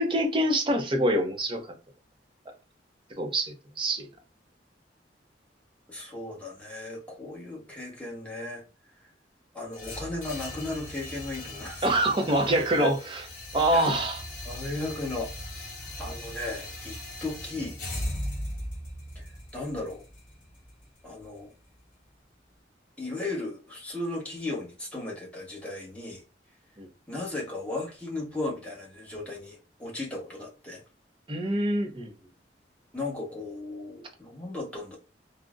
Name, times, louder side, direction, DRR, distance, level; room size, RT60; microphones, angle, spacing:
voice 1, 0.0-1.6 3.2-4.1 11.8-12.9 13.5-14.2 26.8-26.9 31.3-32.1, right 1 dB, 30° right, 0.6 m, -25 dB
voice 2, 5.9-8.6 9.5-11.9 12.8-12.9 13.7-13.9 14.4-15.3 16.0-17.8 19.1-20.0 21.0-21.5 23.0-26.2 27.1-30.8 32.9-35.0, left 2 dB, 5° left, 1.0 m, -35 dB
sound 1, 9.7-21.8, left 1 dB, 50° left, 0.9 m, -39 dB
3.7 x 2.1 x 2.4 m
head